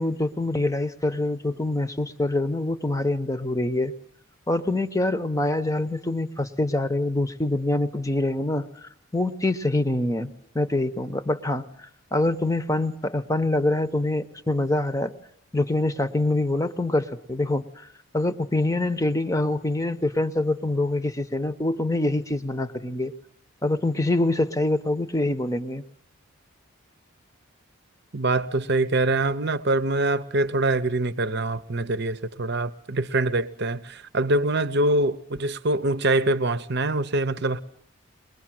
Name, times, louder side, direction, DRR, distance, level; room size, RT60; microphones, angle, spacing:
voice 1, 0.0-3.9 4.5-15.1 15.5-17.9 18.1-23.1 23.6-25.8, left 2 dB, 15° left, 0.9 m, -25 dB
voice 2, 28.1-37.6, right 2 dB, 50° right, 0.9 m, -24 dB
23.0 x 20.5 x 7.7 m
head